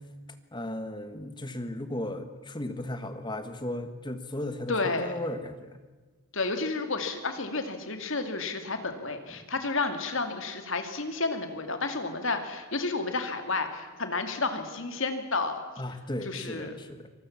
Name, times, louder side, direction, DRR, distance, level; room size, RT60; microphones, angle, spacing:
voice 1, 0.5-5.7 15.8-17.1, left 1 dB, 20° left, 9 dB, 1.6 m, -35 dB
voice 2, 4.7-5.1 6.3-15.6 16.2-16.8, left 3 dB, 60° left, 7 dB, 2.5 m, -31 dB
25.0 x 20.0 x 7.4 m, 1.3 s
head